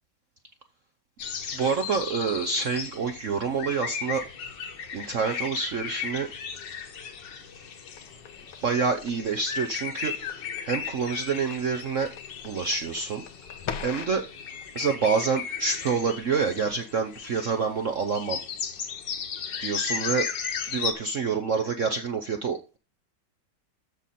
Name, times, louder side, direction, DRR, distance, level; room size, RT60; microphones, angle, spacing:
sound 1, 1.2-20.9, left 7 dB, 60° left, 1.8 m, -36 dB
voice 1, 1.5-4.2 4.9-6.3 8.6-12.1 12.4-13.2 13.8-14.2 14.7-18.4 19.6-20.3 20.7-22.8, right 5 dB, 60° right, 7 dB, 0.8 m, -27 dB
sound 2, 8.0-14.2, left 8 dB, 85° left, 1.8 m, -42 dB
13.5 x 5.2 x 4.3 m, 0.31 s
omnidirectional pair, 2.3 m